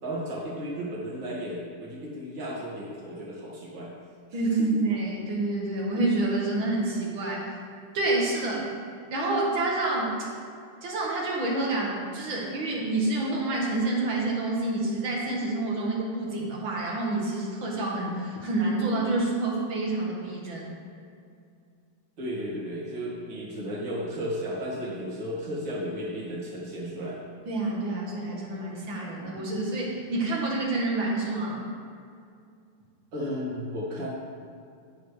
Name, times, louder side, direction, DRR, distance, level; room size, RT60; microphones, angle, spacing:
voice 1, 0.0-3.9 4.3-4.8 22.2-27.2 33.1-34.1, equal, 65° right, -5 dB, 2.7 m, -34 dB
voice 2, 4.3-7.6 7.9-8.7 9.1-10.2 10.8-20.7 27.5-31.7, right 2 dB, 80° right, -3 dB, 2.5 m, -28 dB
14.5 x 6.7 x 3.3 m, 2.4 s
omnidirectional pair, 2.1 m